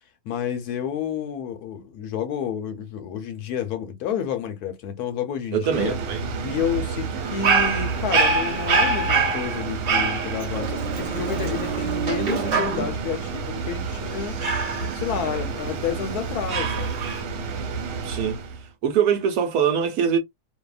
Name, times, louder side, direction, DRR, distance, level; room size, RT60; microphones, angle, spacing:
voice 1, 0.3-6.0 6.4-14.4 14.8-16.9, left 8 dB, 70° left, 1.0 m, -30 dB
voice 2, 5.5-6.2 18.0-18.4 18.8-20.2, right 8 dB, 70° right, 1.1 m, -22 dB
sound 1, 5.7-18.7, right 5 dB, 90° right, 1.3 m, -31 dB
Dog, 7.2-13.1 14.4-15.9 16.5-17.2, right 4 dB, 50° right, 0.7 m, -25 dB
2.7 x 2.3 x 2.3 m
omnidirectional pair, 1.8 m